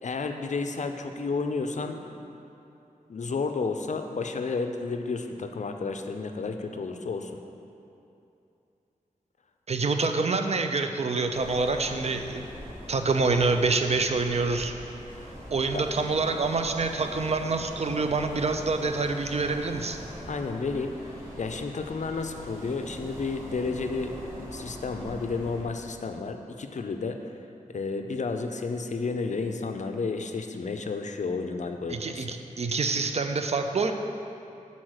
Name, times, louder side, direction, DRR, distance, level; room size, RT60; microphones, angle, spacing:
voice 1, 0.0-2.3 3.1-7.3 15.7-15.8 20.3-27.2 27.7-32.3, left 4 dB, 55° left, 6 dB, 0.5 m, -32 dB
voice 2, 9.7-12.5 12.9-14.7 15.5-20.0 31.9-33.9, right 3 dB, 50° right, 6 dB, 0.4 m, -26 dB
sound 1, 11.3-25.6, equal, 20° right, 1.7 m, -42 dB
6.1 x 4.2 x 6.4 m, 2.8 s
wide cardioid pair, 70°, 14 cm